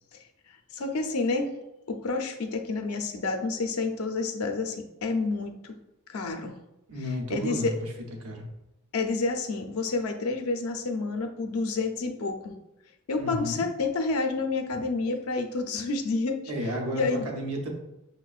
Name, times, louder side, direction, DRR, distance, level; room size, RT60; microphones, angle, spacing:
voice 1, 0.7-1.5 1.9-5.8 6.1-6.6 7.3-7.7 8.9-12.5 13.1-16.4 16.9-17.3, left 3 dB, 70° left, 5 dB, 0.5 m, -29 dB
voice 2, 6.9-7.9 8.2-8.5 13.2-13.6 16.5-17.7, equal, 85° right, 1 dB, 0.8 m, -32 dB
5.9 x 2.1 x 2.3 m, 0.92 s
head